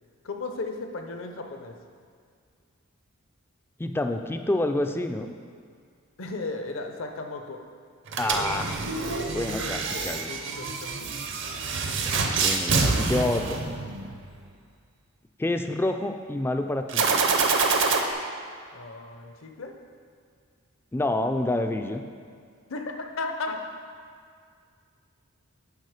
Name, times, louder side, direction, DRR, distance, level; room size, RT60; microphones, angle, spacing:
voice 1, 0.2-1.8 6.2-7.6 8.1-8.2 9.6-11.5 18.7-19.8 22.7-23.6, left 3 dB, 65° left, 4 dB, 0.8 m, -36 dB
voice 2, 3.8-5.3 8.2-8.8 9.3-10.3 12.4-13.6 15.4-17.7 20.9-22.0, left 1 dB, 10° left, 6 dB, 0.3 m, -28 dB
sound 1, 8.1-14.2 16.9-18.0, right 4 dB, 60° right, 0.7 m, -26 dB
10.5 x 4.3 x 4.9 m, 2.2 s
head